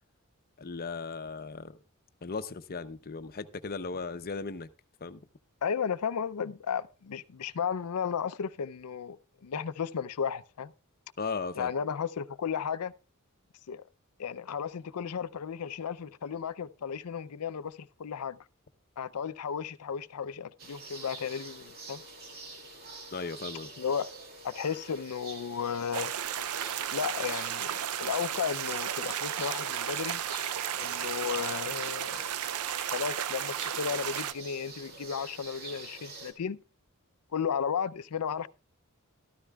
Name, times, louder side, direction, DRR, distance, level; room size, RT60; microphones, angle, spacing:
voice 1, 0.6-1.8 2.2-4.7 5.0-5.2 11.2-11.7 23.1-23.7, left 4 dB, 45° left, 0.7 m, -37 dB
voice 2, 5.6-9.2 9.4-10.7 11.6-12.9 13.7-13.8 14.2-18.4 19.0-22.0 23.8-24.1 24.4-26.1 26.9-30.2 30.7-32.3 32.9-36.6 37.3-38.5, left 7 dB, 90° left, 0.5 m, -34 dB
sound 1, 20.6-36.3, right 3 dB, 45° right, 2.4 m, -46 dB
sound 2, 25.9-34.3, right 10 dB, 75° right, 0.5 m, -34 dB
13.5 x 13.0 x 2.3 m
head